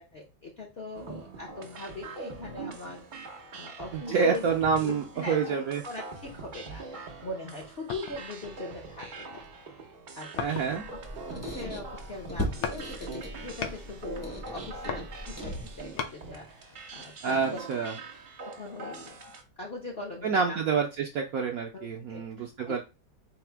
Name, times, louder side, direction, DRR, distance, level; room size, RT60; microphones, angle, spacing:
voice 1, 0.0-4.5 4.8-9.5 10.1-17.7 18.4-19.3 19.6-20.6 21.7-22.8, left 2 dB, 55° left, -2 dB, 0.7 m, -41 dB
sound 1, 0.9-19.4, right 4 dB, 85° right, 0.4 m, -44 dB
voice 2, 3.9-5.8 10.4-10.8 17.2-17.9 20.2-22.8, right 5 dB, 70° right, 1 dB, 0.8 m, -28 dB
sound 2, 7.9-8.3 8.9-9.6 10.4-10.9 11.3-12.0 12.6-12.9 13.2-13.9 14.6-16.2 16.7-16.8, left 7 dB, 75° left, 1.3 m, -37 dB
Squeak, 10.8-16.0, equal, 15° left, 0.5 m, -38 dB
4.2 x 2.0 x 4.4 m, 0.28 s
omnidirectional pair, 2.0 m